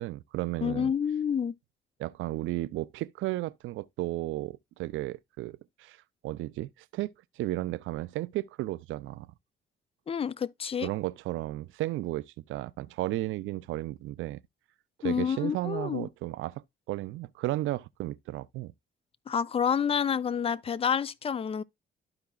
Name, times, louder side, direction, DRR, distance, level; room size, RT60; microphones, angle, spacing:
voice 1, 0.0-0.9 2.0-6.0 6.2-9.3 10.8-14.4 15.0-18.7, right 17 dB, 80° right, 0.4 m, -34 dB
voice 2, 0.6-1.5 10.1-10.9 15.0-16.1 19.3-21.6, left 7 dB, 30° left, 0.4 m, -28 dB
12.5 x 4.8 x 2.3 m
cardioid pair, 90°, 20 cm